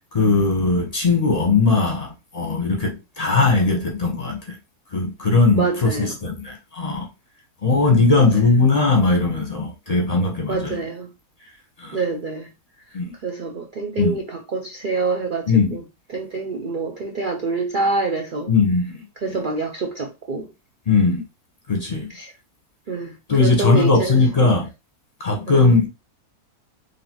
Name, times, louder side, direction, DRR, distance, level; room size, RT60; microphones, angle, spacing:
voice 1, 0.0-4.6 4.9-7.1 7.6-10.8 11.8-12.0 12.9-13.1 14.0-14.2 15.5-15.8 18.5-19.1 20.9-21.2 21.7-22.1 23.3-24.7 25.2-25.9, left 3 dB, 30° left, 0.8 m, -19 dB
voice 2, 5.5-6.2 8.1-8.4 10.5-11.1 11.9-12.5 12.9-15.8 16.1-18.5 19.2-20.5 22.1-22.3 22.9-24.6 25.5-25.7, right 3 dB, 80° right, 0.4 m, -26 dB
3.9 x 3.3 x 3.0 m
omnidirectional pair, 1.6 m